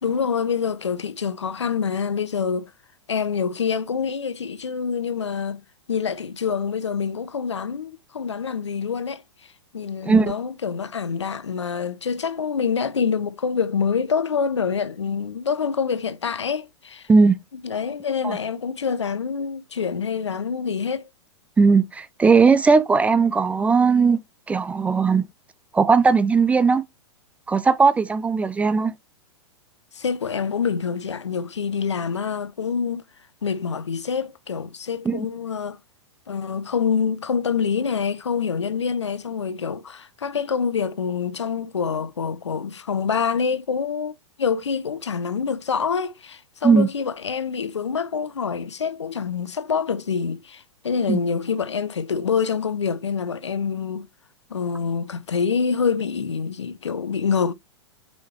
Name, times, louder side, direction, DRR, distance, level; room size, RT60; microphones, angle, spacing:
voice 1, 0.0-2.7 3.1-5.6 5.9-9.2 9.7-17.1 17.6-21.1 29.9-33.0 33.4-35.8 36.3-54.1 54.5-57.5, left 6 dB, 75° left, 0.6 m, -26 dB
voice 2, 21.6-24.2 24.5-25.2 25.7-26.8 27.5-28.9 35.1-35.3 46.6-46.9 51.1-51.2, right 4 dB, 10° right, 0.4 m, -18 dB
6.2 x 5.6 x 2.9 m
figure-of-eight pair, 105°, 15 cm